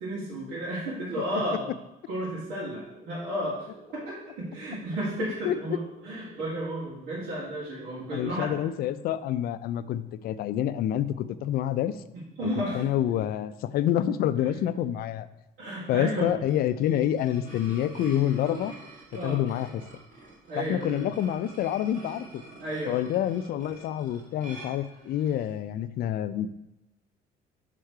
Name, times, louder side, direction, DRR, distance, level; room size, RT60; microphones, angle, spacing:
voice 1, 0.0-1.7 2.1-8.5 12.1-12.8 14.4-14.6 15.6-16.3 19.1-19.4 20.5-21.0 22.6-23.1, right 1 dB, 85° right, -9 dB, 2.1 m, -33 dB
sound 1, 2.8-7.8, equal, 25° right, 1.9 m, -52 dB
voice 2, 8.1-11.9 12.4-12.5 12.7-15.3 15.9-18.7 19.2-19.8 20.6-22.4 22.9-26.5, left 11 dB, 65° left, 14 dB, 0.4 m, -27 dB
sound 2, 16.2-25.5, right 2 dB, 50° right, 2.1 m, -47 dB
6.4 x 3.8 x 4.6 m, 0.95 s
cardioid pair, 110°, 17 cm